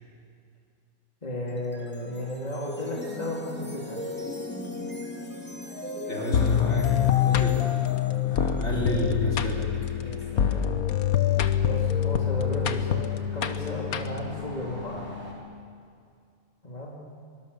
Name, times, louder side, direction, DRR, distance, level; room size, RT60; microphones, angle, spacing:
voice 1, 1.2-4.0 10.0-10.8 11.6-13.0 13.3-15.1 16.6-17.0, left 1 dB, 25° left, -3 dB, 3.3 m, -34 dB
sound 1, 1.5-10.7, left 2 dB, 5° left, 2.4 m, -38 dB
voice 2, 6.1-10.0, left 2 dB, 50° left, -1 dB, 4.3 m, -30 dB
sound 2, 6.3-14.4, left 10 dB, 80° left, 1.5 m, -25 dB
sound 3, 8.0-15.3, left 5 dB, 50° right, 4.9 m, -41 dB
23.5 x 23.0 x 7.1 m, 2.3 s
omnidirectional pair, 1.5 m